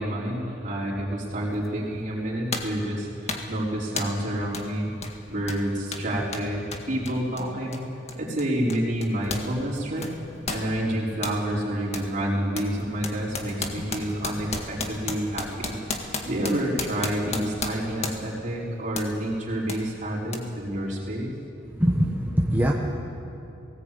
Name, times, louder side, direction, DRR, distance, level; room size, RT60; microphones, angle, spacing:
voice 1, 0.0-4.9 5.3-7.8 8.2-10.1 10.5-15.7 16.3-21.3, right 1 dB, 45° right, -5 dB, 4.7 m, -28 dB
sound 1, 1.6-1.8 2.5-2.8 3.3-3.6 4.0-4.2 4.5-4.7 5.0-9.5 9.8-11.4 11.9-12.1 12.5-18.4 18.9-19.1 19.7-19.8 20.3-20.4, left 3 dB, 35° left, 1.7 m, -34 dB
voice 2, 21.6-22.7, equal, 10° right, -3 dB, 1.3 m, -24 dB
18.5 x 18.5 x 8.5 m, 2.8 s
head